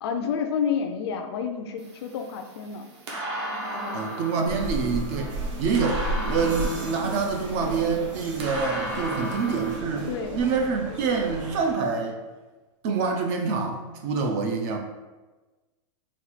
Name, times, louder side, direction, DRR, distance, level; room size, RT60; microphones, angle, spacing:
voice 1, 0.0-2.9 3.7-4.0 10.1-10.4, left 7 dB, 50° left, 6 dB, 0.4 m, -29 dB
sound 1, 1.8-9.8, equal, 55° right, 0.9 m, -35 dB
voice 2, 3.9-5.3 5.6-10.1 10.3-12.2 12.8-14.8, right 5 dB, 30° right, 3 dB, 0.3 m, -26 dB
sound 2, 4.4-11.7, right 2 dB, 80° right, 1.2 m, -34 dB
4.1 x 2.3 x 4.2 m, 1.2 s
supercardioid pair, 165°, 17 cm